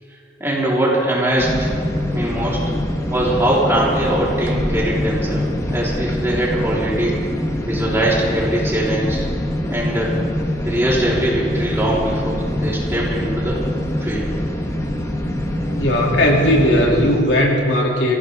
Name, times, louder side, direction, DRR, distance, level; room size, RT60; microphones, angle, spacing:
voice 1, 0.4-1.7 2.1-2.6 3.1-7.2 7.6-9.3 9.7-10.2 10.6-13.7 14.0-14.4, right 1 dB, 15° right, -6 dB, 3.9 m, -21 dB
sound 1, 1.4-17.2, left 1 dB, 15° left, 1.3 m, -24 dB
voice 2, 15.8-18.2, left 1 dB, 85° left, -1 dB, 2.7 m, -17 dB
23.0 x 15.5 x 3.6 m, 2.6 s
head